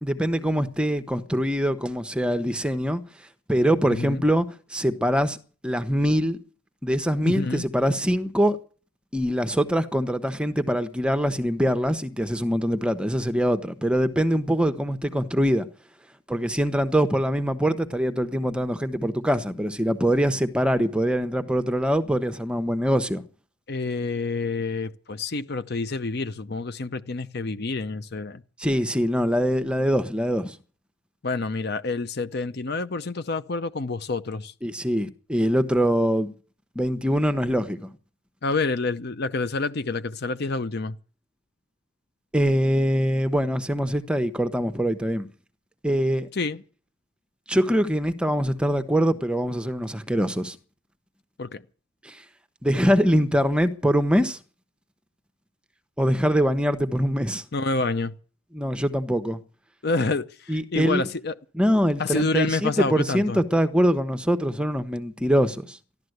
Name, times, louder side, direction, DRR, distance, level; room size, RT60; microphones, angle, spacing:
voice 1, 0.0-3.0 3.5-5.4 5.6-6.4 6.8-8.6 9.1-15.7 16.3-23.2 28.6-30.6 34.6-36.3 36.7-37.9 42.3-45.3 45.8-46.3 47.5-50.6 52.0-52.2 52.6-54.4 56.0-57.4 58.5-59.4 60.5-61.1 61.5-65.8, equal, 5° right, 0.9 m, -23 dB
voice 2, 3.9-4.2 7.3-7.6 23.7-28.4 31.2-34.5 38.4-41.0 46.3-46.6 51.4-51.6 57.5-58.1 59.8-61.3 62.0-63.4, left 3 dB, 50° left, 0.7 m, -28 dB
14.5 x 12.0 x 7.9 m
head